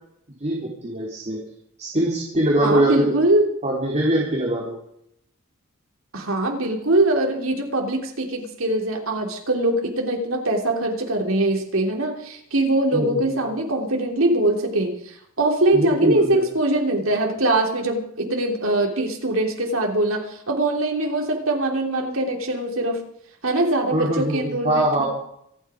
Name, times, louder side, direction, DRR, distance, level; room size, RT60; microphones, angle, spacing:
voice 1, 0.4-1.4 1.8-3.1 3.6-4.8 12.9-13.4 15.7-16.4 23.9-25.1, right 1 dB, 35° right, -5 dB, 3.9 m, -23 dB
voice 2, 2.6-3.5 6.1-23.1 23.4-25.1, right 1 dB, 70° right, 2 dB, 3.2 m, -22 dB
26.5 x 9.7 x 5.0 m, 0.72 s
head